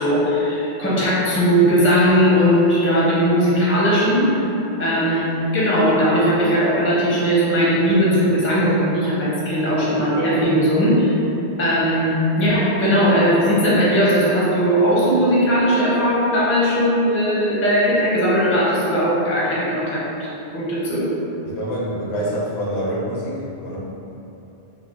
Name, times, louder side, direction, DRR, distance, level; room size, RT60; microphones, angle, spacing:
voice 1, 0.0-4.4 4.8-11.2 11.6-21.1, equal, 15° left, -7 dB, 0.5 m, -18 dB
voice 2, 21.4-23.8, equal, 75° left, -5 dB, 0.9 m, -26 dB
3.2 x 2.1 x 3.8 m, 2.9 s
omnidirectional pair, 1.1 m